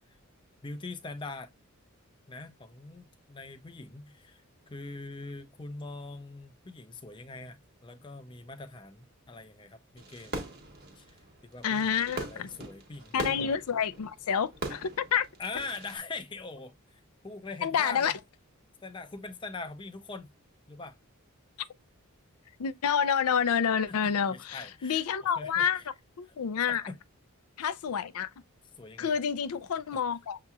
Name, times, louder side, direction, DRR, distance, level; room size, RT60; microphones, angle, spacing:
voice 1, 0.6-1.5 2.3-4.4 4.7-10.4 11.0-11.2 11.5-11.9 12.2-13.4 15.4-18.1 18.8-20.3 20.7-21.0 23.9-25.0 25.4-25.6 26.7-26.9 28.8-29.1, left 3 dB, 20° left, 0.5 m, -42 dB
Fireworks, 10.0-16.0, right 2 dB, 45° right, 1.2 m, -41 dB
voice 2, 11.6-12.5 13.1-15.3 17.6-18.2 22.6-25.8 26.2-26.8 27.6-28.3 29.0-30.4, left 7 dB, 85° left, 0.4 m, -28 dB
6.6 x 2.8 x 2.3 m
head